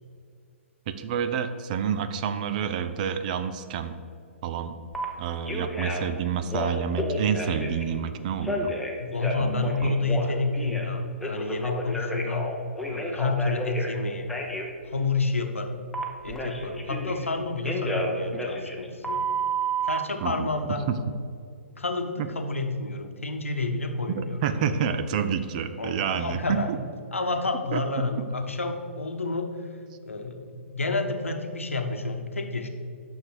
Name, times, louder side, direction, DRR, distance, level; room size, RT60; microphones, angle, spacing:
voice 1, 0.9-4.0 4.4-4.7 5.2-8.7 9.4-9.9 20.2-20.5 20.9-21.0 22.2-22.3 24.1-26.8 27.7-27.8, right 7 dB, 35° right, 10 dB, 0.5 m, -28 dB
Telephone, 4.9-5.0 5.4-6.1 6.5-7.8 8.4-10.9 11.2-13.9 14.3-14.7 15.9-17.3 17.6-20.0, right 1 dB, 5° left, 0.9 m, -30 dB
voice 2, 9.0-12.5 12.9-14.4 14.9-15.8 16.2-19.2 19.8-20.9 21.8-24.7 25.8-26.7 27.1-29.5 30.0-32.7, left 3 dB, 75° left, 6 dB, 1.0 m, -29 dB
9.5 x 6.5 x 4.7 m, 2.4 s
figure-of-eight pair, 120°, 7 cm